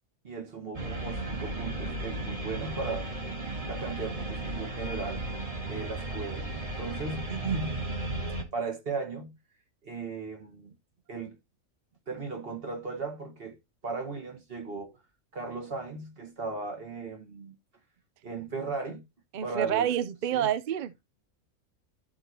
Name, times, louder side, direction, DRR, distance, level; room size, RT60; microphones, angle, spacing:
voice 1, 0.2-3.1 3.6-5.2 5.7-7.9 8.5-9.4 9.8-10.7 11.1-11.4 12.1-13.6 13.8-15.0 15.3-17.6 18.2-19.0 19.4-19.9 20.3-20.5, right 4 dB, 45° right, 1.8 m, -36 dB
sound 1, 0.7-8.4, right 2 dB, 25° right, 1.6 m, -35 dB
voice 2, 19.3-21.0, right 10 dB, 70° right, 0.4 m, -28 dB
12.0 x 4.7 x 2.9 m
omnidirectional pair, 1.5 m